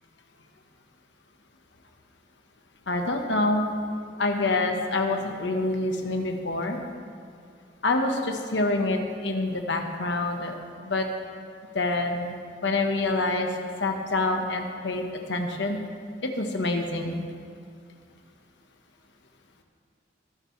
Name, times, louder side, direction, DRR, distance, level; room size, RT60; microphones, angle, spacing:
voice 1, 2.9-3.7 4.2-6.8 7.8-10.5 10.8-11.0 11.7-12.4 12.6-13.5 13.8-15.8 16.4-17.2, left 2 dB, 65° left, 3 dB, 1.2 m, -26 dB
20.5 x 9.3 x 3.3 m, 2.3 s
head